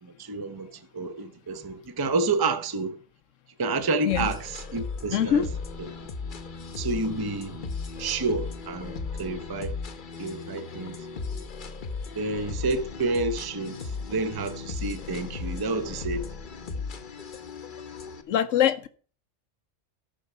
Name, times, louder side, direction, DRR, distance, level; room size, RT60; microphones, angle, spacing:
voice 1, 0.0-3.0 3.6-5.5 6.8-7.6 8.0-9.8 10.2-11.0 11.4-11.5 12.1-16.2, right 3 dB, 25° right, 0.6 m, -29 dB
sound 1, 4.1-18.2, left 4 dB, 45° left, 1.0 m, -36 dB
voice 2, 5.1-5.5 18.3-18.9, left 10 dB, 80° left, 1.0 m, -23 dB
13.0 x 6.0 x 5.5 m
omnidirectional pair, 1.3 m